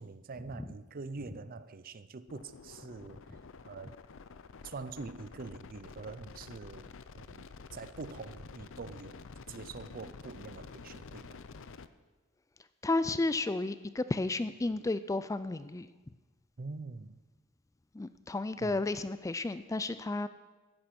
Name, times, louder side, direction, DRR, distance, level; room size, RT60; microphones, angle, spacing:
voice 1, 0.0-4.0 4.6-11.4 16.6-17.2 18.6-18.8, right 4 dB, 40° right, 0.5 m, -45 dB
sound 1, 2.3-11.9, left 4 dB, 60° left, 0.6 m, -49 dB
voice 2, 12.8-15.9 17.9-20.3, left 2 dB, 15° left, 0.3 m, -32 dB
15.5 x 9.7 x 6.0 m
head